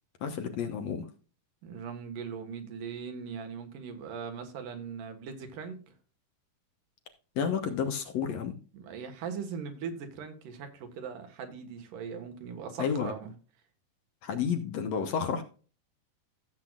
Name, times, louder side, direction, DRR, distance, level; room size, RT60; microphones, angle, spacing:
voice 1, 0.2-1.1 7.4-8.6 12.8-13.1 14.2-15.4, left 7 dB, 65° left, 5 dB, 2.0 m, -31 dB
voice 2, 1.6-5.8 8.7-13.3, right 6 dB, 85° right, 6 dB, 3.1 m, -40 dB
14.5 x 7.6 x 2.4 m, 0.36 s
omnidirectional pair, 3.7 m